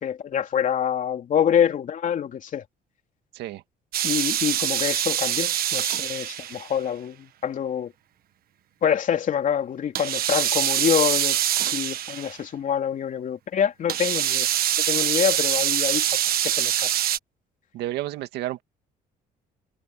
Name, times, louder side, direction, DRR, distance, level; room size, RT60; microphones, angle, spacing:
voice 1, 0.0-2.6 4.0-7.9 8.8-11.4 11.7-14.5 14.9-16.1 16.4-16.9, left 8 dB, 50° left, 3.2 m, -26 dB
sound 1, 3.9-6.8 9.9-12.4 13.9-17.2, right 11 dB, 60° right, 1.4 m, -24 dB
voice 2, 17.7-18.6, right 14 dB, 80° right, 2.1 m, -31 dB
cardioid pair, 110°, 17 cm